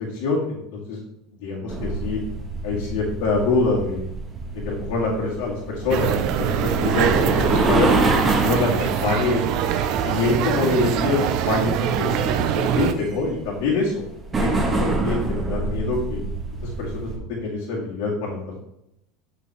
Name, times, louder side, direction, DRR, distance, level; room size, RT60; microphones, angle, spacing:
voice 1, 0.1-1.0 1.3-2.2 2.6-4.0 4.6-7.9 8.4-9.5 9.9-13.9 14.4-16.2 16.6-18.6, left 3 dB, 70° left, -7 dB, 2.4 m, -25 dB
sound 1, 1.7-17.2, right 2 dB, 25° right, 1.7 m, -27 dB
sound 2, 5.9-12.9, right 9 dB, 60° right, 0.7 m, -24 dB
7.7 x 6.5 x 3.6 m, 0.83 s
hypercardioid pair, 80°, 0 cm